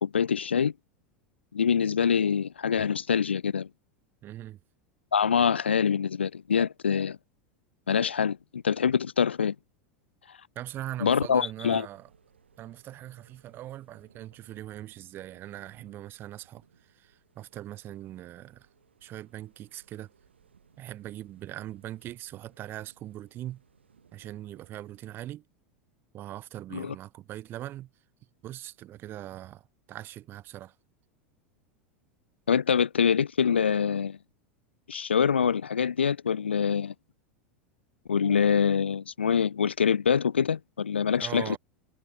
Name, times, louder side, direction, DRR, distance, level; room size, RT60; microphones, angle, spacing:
voice 1, 0.0-0.7 1.5-3.7 5.1-7.2 7.9-9.6 11.0-11.9 26.7-26.9 32.5-34.2 34.9-36.9 38.1-41.6, left 7 dB, 75° left, 0.5 m, -25 dB
voice 2, 4.2-4.6 10.6-12.1 12.6-18.7 19.0-20.1 20.8-23.6 24.1-25.4 26.1-27.9 28.4-30.7 41.2-41.6, right 13 dB, 35° right, 3.8 m, -41 dB
sound 1, 11.7-25.1, right 7 dB, 75° right, 7.6 m, -63 dB
figure-of-eight pair, 85°, 6 cm